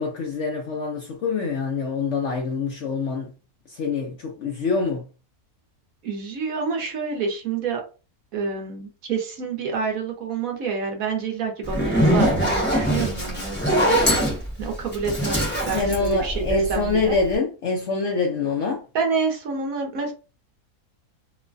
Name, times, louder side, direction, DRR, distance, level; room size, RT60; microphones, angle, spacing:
voice 1, 0.0-3.3 3.7-5.1 15.7-18.8, left 4 dB, 65° left, 0.7 m, -25 dB
voice 2, 6.0-7.8 8.3-14.0 14.6-16.4 16.7-17.2 18.9-20.1, right 5 dB, 65° right, 1.1 m, -28 dB
Zipper (clothing), 11.6-16.9, equal, 10° left, 0.6 m, -22 dB
3.1 x 2.1 x 2.4 m
omnidirectional pair, 1.7 m